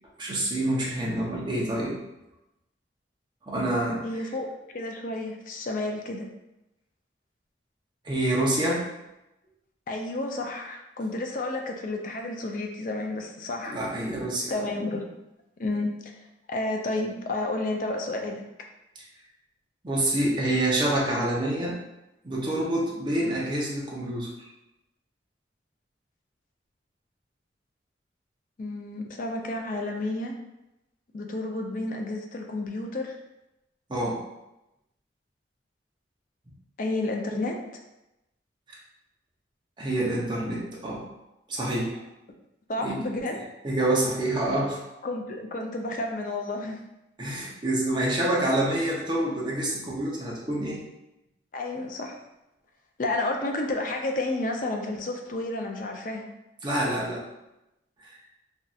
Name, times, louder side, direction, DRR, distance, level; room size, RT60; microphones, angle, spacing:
voice 1, 0.2-2.0 3.5-4.0 8.0-8.8 13.7-14.7 19.8-21.8 22.2-24.5 33.9-34.2 38.7-38.8 39.8-41.0 41.5-42.0 42.8-43.0 43.6-44.8 47.2-50.8 56.6-57.3, right 1 dB, 25° right, -4 dB, 0.7 m, -27 dB
voice 2, 4.0-6.3 9.9-13.8 14.5-15.1 15.6-16.1 16.5-18.4 28.6-30.3 31.1-33.2 36.8-37.6 42.7-43.4 45.0-46.8 51.5-52.2 53.0-56.3, left 2 dB, 45° left, 2 dB, 0.4 m, -31 dB
3.1 x 2.7 x 2.3 m, 0.92 s
head